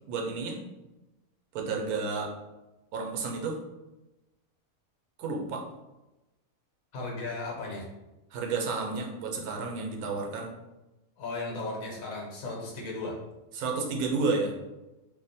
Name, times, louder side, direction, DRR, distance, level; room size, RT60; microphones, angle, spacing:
voice 1, 0.1-0.6 1.5-2.3 2.9-3.6 5.2-5.6 8.3-10.5 13.5-14.5, right 4 dB, 85° right, 1 dB, 1.1 m, -31 dB
voice 2, 6.9-7.9 11.2-13.1, left 3 dB, 70° left, -2 dB, 1.3 m, -35 dB
2.8 x 2.0 x 4.1 m, 1.0 s
omnidirectional pair, 1.5 m